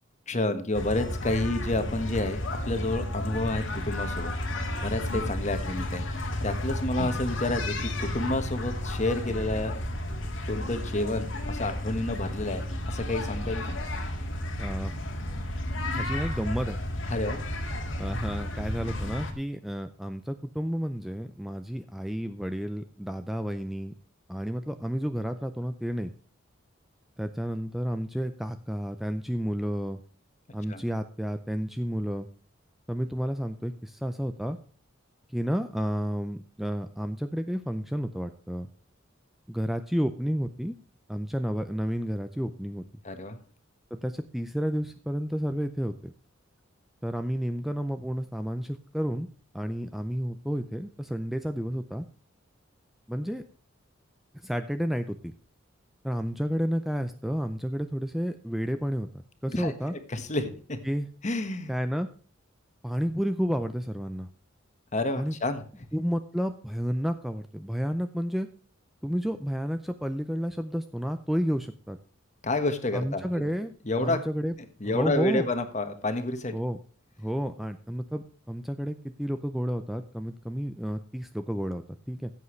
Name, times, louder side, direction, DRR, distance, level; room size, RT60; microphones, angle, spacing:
voice 1, 0.3-2.4 2.7-4.3 4.8-9.8 10.4-13.8 17.1-17.4 30.7-30.8 43.0-43.4 59.5-60.8 61.2-61.7 64.9-65.6 72.4-73.5 73.8-74.2 74.8-76.5, left 2 dB, 35° left, 8 dB, 1.4 m, -30 dB
sound 1, 0.7-19.3, left 1 dB, 75° left, 1.9 m, -32 dB
voice 2, 14.6-14.9 15.9-16.8 18.0-23.9 24.3-26.1 27.2-30.0 30.5-32.3 32.9-34.6 35.3-38.7 39.5-40.7 41.1-42.8 43.9-46.1 47.0-49.3 49.5-52.1 53.1-53.4 54.4-55.3 56.0-59.9 60.8-61.1 61.7-62.1 62.8-64.3 65.2-65.4 65.9-68.5 69.0-72.0 72.9-73.7 74.0-74.5 74.8-75.5 76.5-76.8 77.2-82.3, equal, ahead, 9 dB, 0.4 m, -31 dB
14.5 x 8.1 x 3.2 m, 0.41 s
head